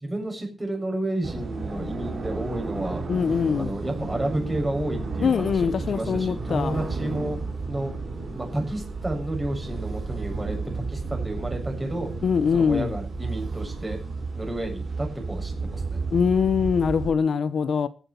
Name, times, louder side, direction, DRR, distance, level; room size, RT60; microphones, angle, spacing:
voice 1, 0.0-3.0 3.5-7.4 7.6-7.9 8.3-12.1 12.5-14.0 14.4-16.0, right 1 dB, 20° right, 7.3 m, -31 dB
sound 1, 1.2-17.1, right 3 dB, 50° right, 6.2 m, -32 dB
voice 2, 3.1-3.8 5.2-6.9 12.2-13.0 16.1-17.9, left 6 dB, 65° left, 1.0 m, -23 dB
16.5 x 10.0 x 6.9 m
wide cardioid pair, 120°, 0 cm